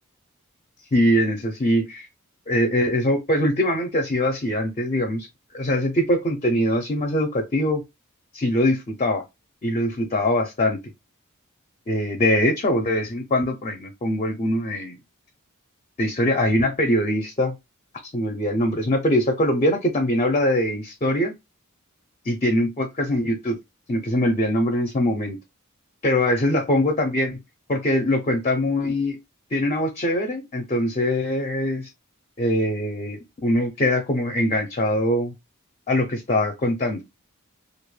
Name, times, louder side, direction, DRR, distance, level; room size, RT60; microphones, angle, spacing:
voice 1, 0.9-2.1 2.5-5.3 5.5-7.8 8.3-9.2 9.6-10.8 11.9-15.0 16.0-17.5 18.1-21.3 22.3-23.6 23.9-25.4 26.0-27.4 27.7-29.2 29.5-31.9 32.4-35.3 35.9-37.0, left 1 dB, 30° left, 0.5 m, -22 dB
2.4 x 2.2 x 3.1 m
head